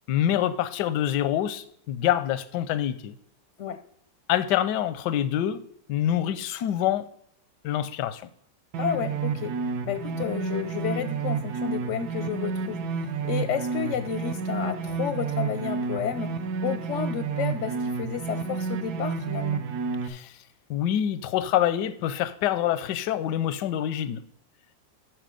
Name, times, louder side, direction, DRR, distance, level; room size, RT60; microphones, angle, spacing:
voice 1, 0.1-3.1 4.3-5.6 5.9-7.1 7.6-8.3 20.0-20.4 20.7-24.2, left 11 dB, 85° left, 14 dB, 1.2 m, -26 dB
sound 1, 8.7-20.1, right 5 dB, 70° right, 1.2 m, -30 dB
voice 2, 8.8-9.5 9.9-19.6, left 8 dB, 65° left, 10 dB, 0.8 m, -31 dB
9.1 x 6.1 x 5.0 m, 0.70 s
omnidirectional pair, 1.8 m